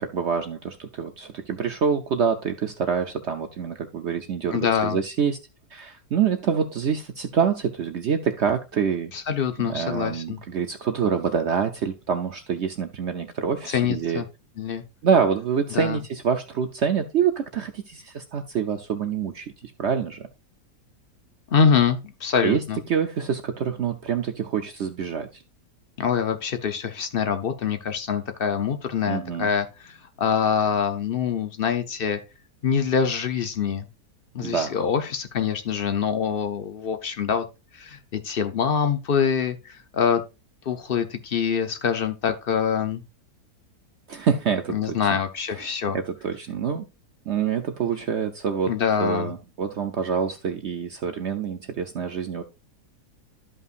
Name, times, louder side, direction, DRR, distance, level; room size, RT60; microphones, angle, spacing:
voice 1, 0.0-5.4 5.7-9.1 9.6-14.2 15.0-20.3 22.4-25.4 29.1-29.5 34.4-34.7 44.1-45.2 45.5-46.8 47.3-48.7 49.0-52.4, right 7 dB, 65° right, 6 dB, 0.7 m, -26 dB
voice 2, 4.5-5.0 9.1-10.4 13.7-14.2 14.6-14.8 15.7-16.0 21.5-22.8 26.0-32.2 32.6-33.9 34.3-37.4 37.7-40.2 40.7-43.0 44.7-46.0 48.7-49.3, left 7 dB, 55° left, 8 dB, 0.6 m, -25 dB
12.5 x 5.5 x 2.5 m, 0.27 s
omnidirectional pair, 1.8 m